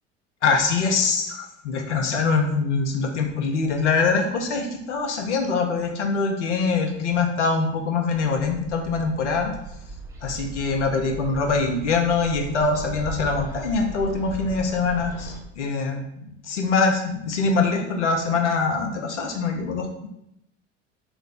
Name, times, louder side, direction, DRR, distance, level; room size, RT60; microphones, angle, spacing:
voice 1, 0.4-9.5 10.2-20.1, left 4 dB, 70° left, 3 dB, 0.6 m, -24 dB
Bird, 8.4-15.4, right 3 dB, 10° right, 0.4 m, -38 dB
3.3 x 2.0 x 3.9 m, 0.80 s
figure-of-eight pair, 70°, 36 cm